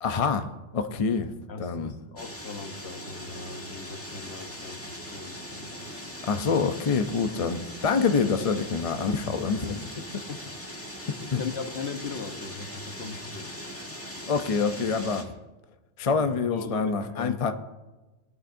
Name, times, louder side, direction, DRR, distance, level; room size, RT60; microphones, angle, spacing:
voice 1, 0.0-1.3 1.6-1.9 6.2-10.0 11.3-11.4 14.3-15.3 16.0-17.5, left 5 dB, 40° left, 7 dB, 0.5 m, -26 dB
voice 2, 1.5-6.1 10.3-10.7 11.4-13.5 16.1-17.4, left 5 dB, 60° left, 6 dB, 1.2 m, -39 dB
sound 1, 2.2-15.2, equal, 10° left, 1.7 m, -40 dB
19.0 x 11.5 x 2.6 m, 1.1 s
omnidirectional pair, 1.3 m